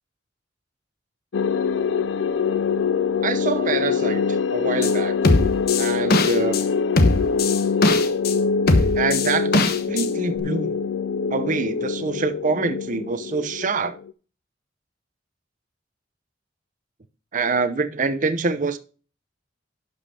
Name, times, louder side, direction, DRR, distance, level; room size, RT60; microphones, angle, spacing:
sound 1, 1.3-14.1, left 5 dB, 80° left, 0.5 m, -24 dB
voice 1, 3.2-5.1 5.8-6.6 8.9-10.7 11.3-14.0 17.3-18.8, right 4 dB, 45° right, 0.7 m, -25 dB
sound 2, 4.8-4.9 5.2-6.6 7.0-8.3 8.7-10.1 10.4-10.5, left 2 dB, 55° left, 1.1 m, -19 dB
11.5 x 5.3 x 4.2 m
head